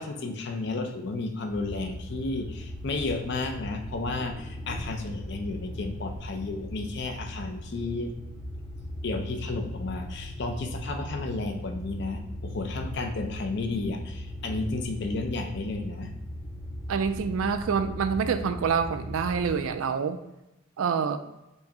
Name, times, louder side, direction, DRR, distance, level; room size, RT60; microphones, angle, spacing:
voice 1, 0.0-8.1 9.0-16.1, left 3 dB, 55° left, 5 dB, 0.6 m, -32 dB
sound 1, 1.5-19.6, left 1 dB, 15° left, 0.7 m, -38 dB
voice 2, 16.9-20.2 20.8-21.2, right 6 dB, 75° right, 10 dB, 0.4 m, -26 dB
4.5 x 2.8 x 4.1 m, 0.95 s
head